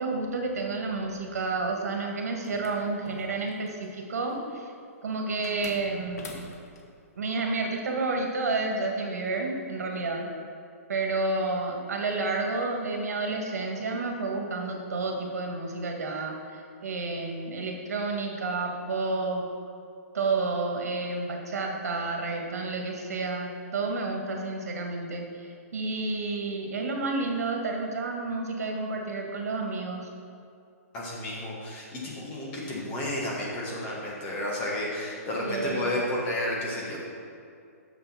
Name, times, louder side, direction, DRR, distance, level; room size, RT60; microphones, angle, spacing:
voice 1, 0.0-4.7 5.0-6.3 7.1-10.3 10.9-19.5 20.1-30.1 35.4-35.9, right 3 dB, 75° right, 1 dB, 1.7 m, -30 dB
sound 1, 2.4-3.9 5.4-6.9, left 3 dB, 80° left, 1.4 m, -44 dB
voice 2, 30.9-37.0, left 1 dB, 15° left, -4 dB, 1.4 m, -32 dB
6.9 x 6.8 x 5.7 m, 2.5 s
hypercardioid pair, 175°, 8 cm